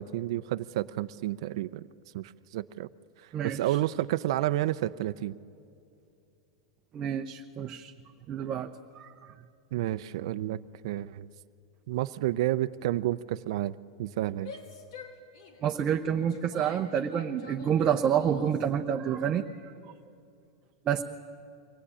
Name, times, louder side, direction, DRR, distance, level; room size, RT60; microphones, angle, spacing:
voice 1, 0.0-1.9 2.1-2.9 3.4-5.4 9.7-11.3 11.9-14.5, right 14 dB, 65° right, 11 dB, 0.5 m, -30 dB
voice 2, 3.3-3.8 6.9-7.9 8.3-8.7 8.9-9.3 15.6-19.7 20.8-21.0, right 8 dB, 30° right, 3 dB, 0.8 m, -28 dB
Female speech woman speaking / Yell, 14.3-18.7, left 4 dB, 75° left, 3.3 m, -47 dB
24.0 x 17.0 x 9.9 m, 2.6 s
supercardioid pair, 150°, 3 cm